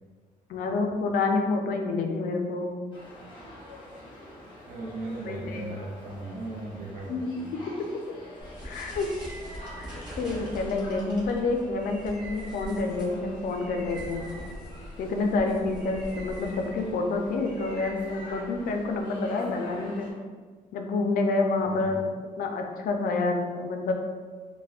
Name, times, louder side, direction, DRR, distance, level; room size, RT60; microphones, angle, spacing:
voice 1, 0.5-2.8 5.3-5.7 7.1-7.4 7.7-7.8 8.6-9.1 9.8-14.3 15.0-20.1 20.7-22.1 22.4-23.9, left 3 dB, 75° left, 3 dB, 0.4 m, -28 dB
sound 1, 2.9-20.1, equal, 35° left, 0.9 m, -47 dB
voice 2, 4.7-7.5 21.6-22.0, right 2 dB, 60° right, -4 dB, 0.4 m, -37 dB
sound 2, 8.4-19.0, equal, 30° right, 0.9 m, -42 dB
3.4 x 2.1 x 2.4 m, 1.5 s
cardioid pair, 130°, 15 cm